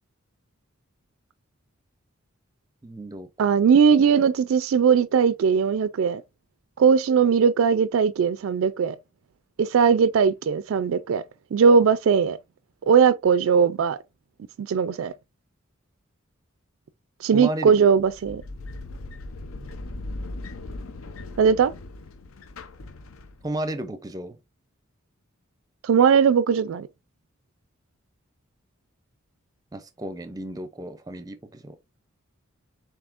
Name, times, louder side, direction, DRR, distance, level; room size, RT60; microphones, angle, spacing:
voice 1, 2.8-3.3 17.3-17.9 23.4-24.4 29.7-31.8, right 1 dB, 20° right, 0.5 m, -33 dB
voice 2, 3.4-6.2 6.8-9.0 9.6-11.2 11.5-12.4 12.9-14.0 14.6-15.1 17.2-18.4 21.4-21.7 25.8-26.9, right 6 dB, 75° right, 0.3 m, -19 dB
sound 1, 18.0-23.6, left 2 dB, 75° left, 0.6 m, -38 dB
7.0 x 2.7 x 2.4 m
head